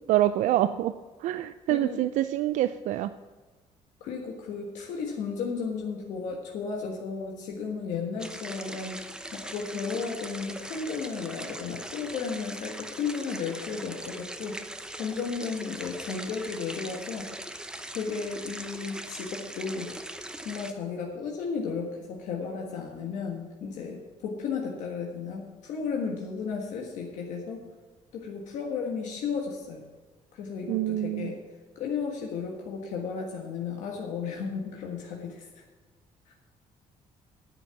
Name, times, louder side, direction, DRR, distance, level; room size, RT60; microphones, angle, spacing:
voice 1, 0.1-0.9 1.2-3.1 30.7-31.3, right 13 dB, 85° right, 12 dB, 0.4 m, -26 dB
voice 2, 1.7-2.0 4.0-9.0 9.3-17.4 17.9-19.9 20.4-27.6 28.1-29.8 30.3-31.4 31.7-35.5 36.3-36.4, left 5 dB, 85° left, 0 dB, 1.5 m, -34 dB
sound 1, 8.2-20.7, right 1 dB, 5° right, 0.7 m, -41 dB
9.9 x 7.7 x 7.0 m, 1.3 s
cardioid pair, 120°, 12 cm